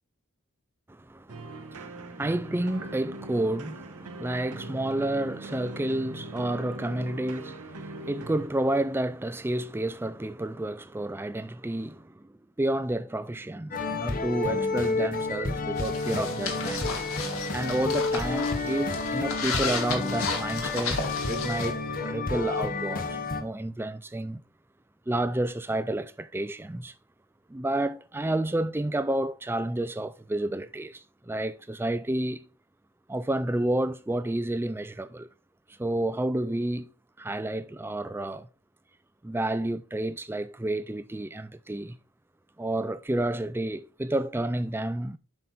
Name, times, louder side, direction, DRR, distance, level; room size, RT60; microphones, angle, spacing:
voice 1, 0.9-16.9 17.5-21.0 21.3-24.4 25.1-26.9 27.5-32.5 33.1-35.3 35.7-36.9 37.2-38.5 39.2-42.0 42.6-45.2, right 1 dB, 10° right, 0.4 m, -30 dB
sound 1, 1.3-8.5, right 2 dB, 90° right, 1.1 m, -41 dB
sound 2, 13.7-23.4, left 3 dB, 40° left, 0.9 m, -30 dB
sound 3, 15.8-21.7, left 4 dB, 65° left, 1.8 m, -34 dB
7.5 x 5.8 x 4.0 m
head